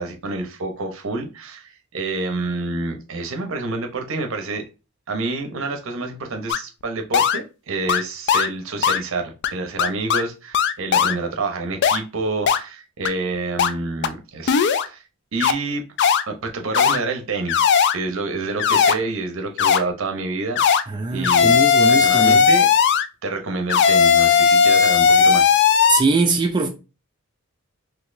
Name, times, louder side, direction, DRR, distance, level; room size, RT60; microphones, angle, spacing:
voice 1, 0.0-4.6 5.1-15.0 15.3-15.8 16.3-20.8 21.1-21.6 21.9-22.7 23.2-25.6, right 3 dB, 65° right, 0.8 m, -28 dB
sound 1, 6.5-6.6 7.1-7.4 7.9-8.0 8.3-8.5 8.8-9.0 9.4-9.5 9.8-10.2 10.5-11.1 11.8-12.0 12.5-12.6 13.0-13.1 13.6-13.7 14.0-14.1 14.5-14.9 15.4-15.5 16.0-16.2 16.7-17.0 17.5-17.9 18.6-18.9 19.6-19.8 20.6-20.8 21.2-23.0 23.7-26.0, left 6 dB, 55° left, 0.3 m, -16 dB
voice 2, 20.9-22.4 25.9-26.7, right 3 dB, 20° right, 0.4 m, -21 dB
4.0 x 2.8 x 2.6 m
head